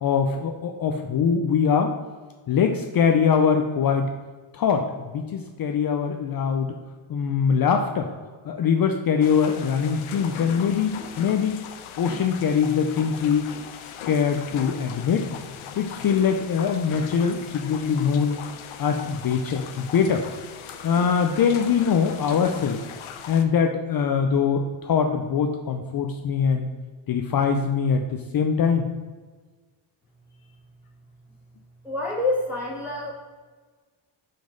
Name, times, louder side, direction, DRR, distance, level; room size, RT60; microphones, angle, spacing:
voice 1, 0.0-1.9 2.5-4.1 4.5-4.8 5.1-6.7 7.1-8.1 8.5-11.6 12.0-13.5 14.1-15.2 15.8-18.4 18.8-20.2 20.8-22.8 23.3-26.7 27.1-28.8, left 6 dB, 45° left, 5 dB, 0.6 m, -22 dB
sound 1, 9.2-23.4, left 7 dB, 85° left, 0.8 m, -39 dB
voice 2, 31.8-33.1, left 2 dB, 5° right, -7 dB, 2.1 m, -27 dB
5.9 x 5.3 x 5.1 m, 1.4 s
cardioid pair, 120°, 47 cm